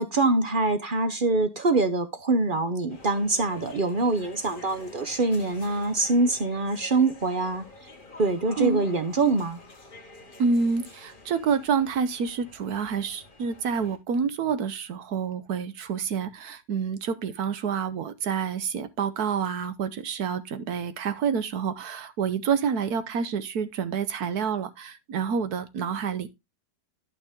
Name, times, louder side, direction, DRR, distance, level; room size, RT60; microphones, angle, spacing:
voice 1, 0.0-7.6 8.2-9.6, right 3 dB, 45° right, 0.6 m, -24 dB
sound 1, 2.9-14.0, left 2 dB, 30° left, 1.7 m, -48 dB
voice 2, 10.4-26.3, right 6 dB, 65° right, 1.2 m, -28 dB
11.5 x 5.8 x 3.5 m
omnidirectional pair, 2.0 m